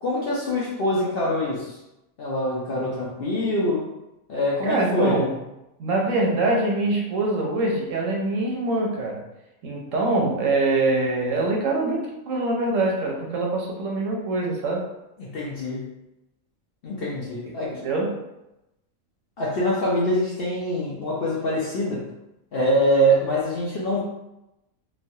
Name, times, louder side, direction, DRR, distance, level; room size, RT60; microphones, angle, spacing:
voice 1, 0.0-1.8 2.2-3.9 4.3-5.2 15.2-15.9 16.8-17.8 19.4-22.1 22.5-24.0, equal, 60° left, -5 dB, 0.6 m, -24 dB
voice 2, 4.6-5.3 5.8-9.2 9.6-14.9 17.7-18.2, right 2 dB, 75° right, 0 dB, 0.9 m, -24 dB
3.0 x 2.2 x 2.6 m, 0.91 s
omnidirectional pair, 1.4 m